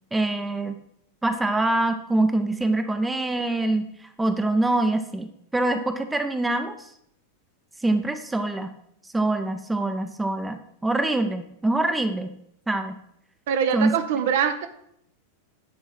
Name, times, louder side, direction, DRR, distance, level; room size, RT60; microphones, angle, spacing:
voice 1, 0.1-0.8 1.2-3.9 4.2-6.7 7.8-8.7 9.1-12.4 12.7-13.0 13.7-13.9, right 2 dB, 10° right, 8 dB, 0.6 m, -24 dB
voice 2, 13.5-14.7, right 8 dB, 55° right, 8 dB, 0.6 m, -23 dB
9.6 x 3.6 x 5.8 m, 0.73 s
figure-of-eight pair, 90°, 0 cm